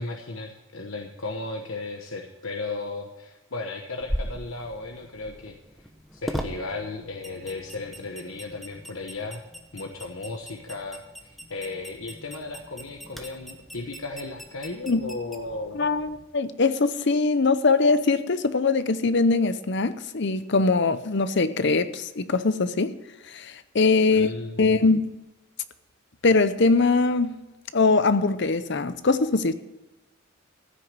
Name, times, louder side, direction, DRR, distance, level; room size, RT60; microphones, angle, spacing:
voice 1, 0.0-5.6 6.1-9.4 9.7-15.9 24.1-24.8, left 3 dB, 70° left, 1.1 m, -35 dB
sound 1, 4.0-16.2, equal, ahead, 1.0 m, -39 dB
voice 2, 15.7-23.0 23.3-25.1 26.2-27.4 27.7-29.5, left 3 dB, 55° left, 0.7 m, -22 dB
15.0 x 6.5 x 8.8 m
head